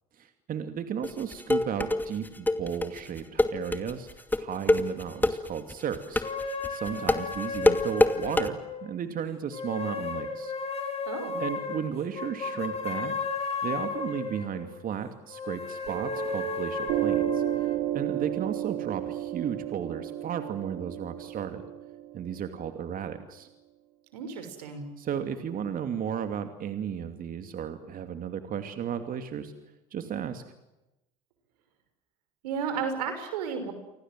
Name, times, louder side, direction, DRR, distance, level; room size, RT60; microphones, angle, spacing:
voice 1, 0.2-4.1 4.4-10.5 11.4-13.1 13.6-17.4 17.9-21.6 22.1-23.5 25.0-29.5 29.9-30.4, right 8 dB, 45° right, 8 dB, 2.8 m, -34 dB
sound 1, 1.0-8.5, left 2 dB, 10° left, 2.4 m, -25 dB
sound 2, 6.2-9.0 9.5-14.7 15.3-17.8, left 4 dB, 30° left, 7.0 m, -34 dB
voice 2, 11.1-11.4 24.1-24.9 32.4-33.7, right 6 dB, 90° right, 8 dB, 6.1 m, -33 dB
Piano, 15.9-22.9, right 13 dB, 70° right, 3.1 m, -32 dB
30.0 x 24.5 x 7.7 m, 0.94 s
supercardioid pair, 85°, 20 cm